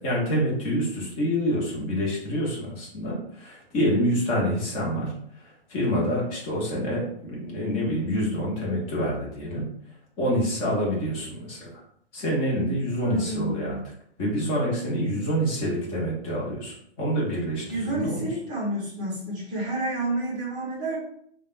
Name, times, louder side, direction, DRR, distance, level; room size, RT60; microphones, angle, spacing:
voice 1, 0.0-9.7 10.2-11.8 12.1-13.8 14.2-18.3, equal, 15° left, -4 dB, 0.8 m, -27 dB
voice 2, 12.9-13.8 17.7-21.0, right 2 dB, 15° right, -5 dB, 0.8 m, -29 dB
3.3 x 2.2 x 2.5 m, 0.67 s
hypercardioid pair, 150°, 33 cm